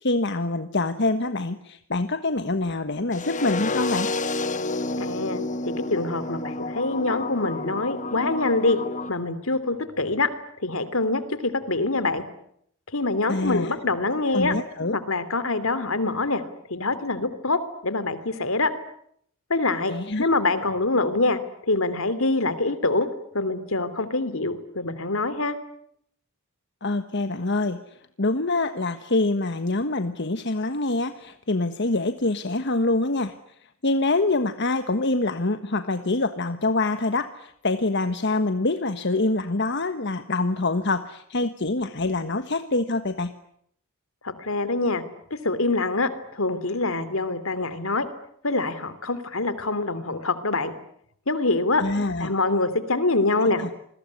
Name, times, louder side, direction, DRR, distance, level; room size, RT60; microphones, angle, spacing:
voice 1, 0.0-4.1 13.3-13.7 14.3-15.0 19.9-20.3 26.8-33.3 33.8-43.3 51.8-52.3 53.4-53.7, left 2 dB, 55° left, 10 dB, 1.3 m, -25 dB
sound 1, 3.1-9.1, left 2 dB, 35° left, 1.4 m, -30 dB
voice 2, 5.0-5.4 5.9-8.8 9.1-10.3 10.6-12.2 12.9-14.5 14.9-16.4 16.7-18.7 19.5-21.4 21.7-23.1 23.3-25.6 44.2-45.0 45.4-48.1 48.4-50.7 51.3-51.8 52.2-53.6, left 2 dB, 70° left, 14 dB, 3.0 m, -25 dB
28.0 x 21.5 x 9.8 m, 0.71 s
head